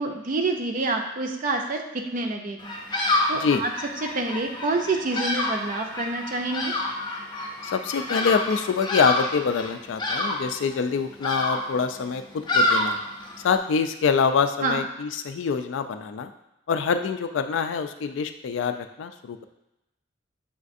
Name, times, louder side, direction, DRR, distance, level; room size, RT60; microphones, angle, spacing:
voice 1, 0.0-2.7 3.3-3.7 4.0-6.7 14.6-14.8, right 3 dB, 45° right, 3 dB, 0.5 m, -27 dB
Bird vocalization bird call bird song, 2.6-13.6, left 2 dB, 25° left, 0.6 m, -28 dB
voice 2, 7.6-13.0 13.4-16.3 16.7-19.4, left 5 dB, 70° left, 8 dB, 0.3 m, -25 dB
7.1 x 2.4 x 2.5 m, 0.93 s
head